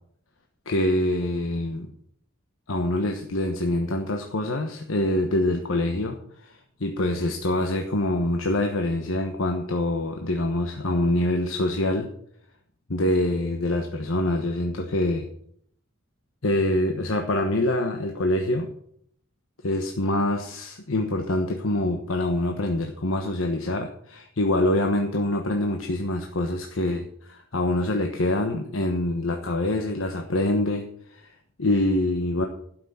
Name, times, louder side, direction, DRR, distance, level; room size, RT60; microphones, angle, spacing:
voice 1, 0.7-1.9 2.7-12.1 12.9-15.3 16.4-18.7 19.6-30.8 31.1-31.3 31.6-32.4, left 1 dB, 85° left, 3 dB, 1.2 m, -25 dB
12.0 x 6.2 x 7.6 m, 0.67 s
head